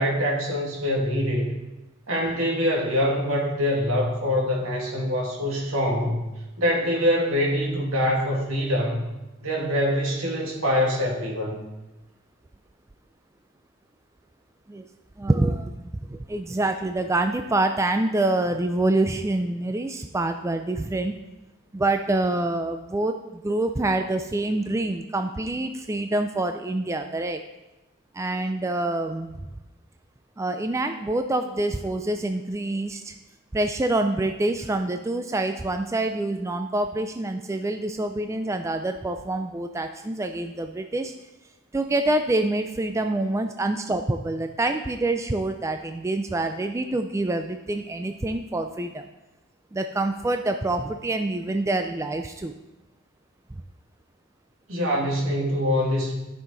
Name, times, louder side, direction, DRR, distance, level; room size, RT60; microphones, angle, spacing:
voice 1, 0.0-1.5 2.1-6.2 6.6-9.0 9.4-11.6 54.7-56.2, equal, 70° right, -1 dB, 2.2 m, -24 dB
voice 2, 15.2-21.1 21.7-27.4 28.1-29.3 30.4-33.1 33.5-41.1 41.7-49.0 49.7-52.5, right 2 dB, 15° right, 6 dB, 0.3 m, -26 dB
13.0 x 5.7 x 3.9 m, 1.0 s
head